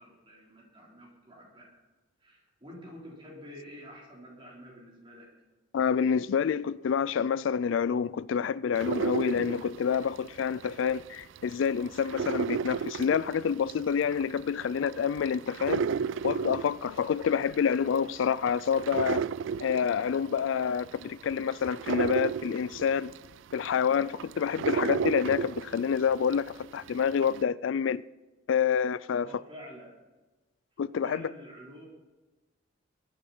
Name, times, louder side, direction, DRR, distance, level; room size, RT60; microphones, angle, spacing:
voice 1, 0.0-1.7 2.2-5.3 29.1-30.0 31.0-31.9, equal, 25° right, 4.1 m, -48 dB
voice 2, 5.7-15.9 16.2-19.2 19.6-23.1 23.5-28.0 28.5-29.3 30.8-31.3, left 7 dB, 80° left, 0.3 m, -28 dB
sound 1, 8.8-11.0 11.4-26.5 26.9-27.4, right 6 dB, 80° right, 0.4 m, -33 dB
21.0 x 10.5 x 4.4 m
head